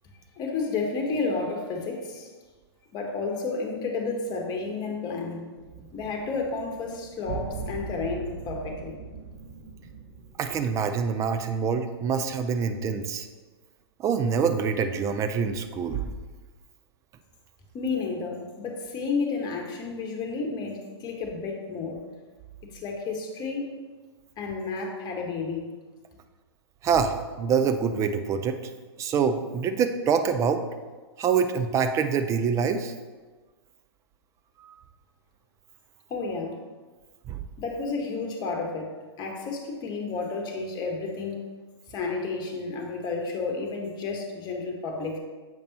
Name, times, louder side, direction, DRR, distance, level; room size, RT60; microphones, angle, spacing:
voice 1, 0.4-2.3 2.9-5.5 5.9-9.0 17.7-22.0 22.7-23.7 24.4-25.7 36.1-36.5 37.6-38.9 39.2-41.5 41.9-45.2, left 4 dB, 30° left, 2 dB, 1.2 m, -31 dB
sound 1, 5.5-12.4, right 5 dB, 45° right, 1.5 m, -41 dB
voice 2, 10.4-13.3 14.0-16.1 26.8-28.6 29.0-30.6 31.2-32.9 34.6-34.7 37.3-37.4, right 6 dB, 20° right, 8 dB, 0.4 m, -25 dB
7.5 x 5.2 x 2.9 m, 1.3 s
hypercardioid pair, 110°, 14 cm